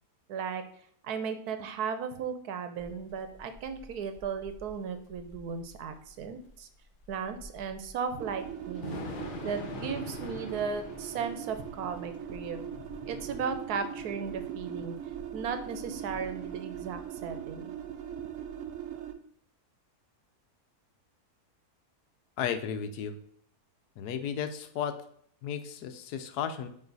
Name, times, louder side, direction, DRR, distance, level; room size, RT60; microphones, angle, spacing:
voice 1, 0.3-0.6 1.0-6.7 7.1-9.0 9.4-12.7 13.1-15.0 15.3-17.8, right 6 dB, 80° right, 8 dB, 1.2 m, -36 dB
Thunder / Rain, 2.8-16.3, left 4 dB, 50° left, 0.7 m, -46 dB
sound 1, 8.2-19.1, right 9 dB, 65° right, 0.9 m, -40 dB
voice 2, 22.4-23.1 24.0-25.0 25.4-26.7, left 8 dB, 90° left, 9 dB, 1.2 m, -34 dB
8.9 x 3.1 x 4.0 m, 0.64 s
omnidirectional pair, 1.6 m